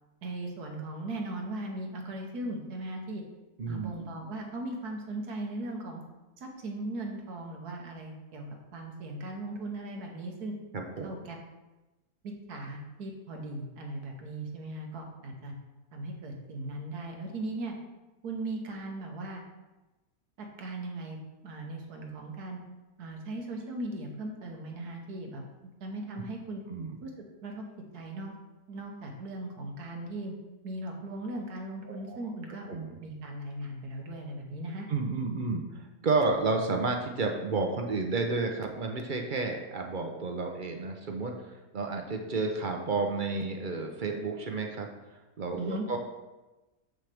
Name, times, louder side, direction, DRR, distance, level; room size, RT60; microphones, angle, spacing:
voice 1, 0.2-3.2 3.7-6.0 6.4-8.5 8.7-10.5 11.0-11.4 12.2-15.5 15.9-17.7 18.2-19.4 20.4-21.2 21.4-22.6 23.0-25.4 25.8-26.6 27.0-27.1 27.4-27.6 27.9-28.3 28.7-30.3 30.6-32.7 33.0-34.9 45.6-45.9, right 2 dB, 85° right, 2 dB, 1.7 m, -38 dB
voice 2, 3.6-4.1 10.7-11.1 26.7-27.0 31.9-32.2 32.7-33.0 34.9-41.3 41.7-44.9 45.4-46.0, right 3 dB, 45° right, 3 dB, 0.7 m, -31 dB
7.4 x 6.4 x 3.4 m, 1.1 s
omnidirectional pair, 1.6 m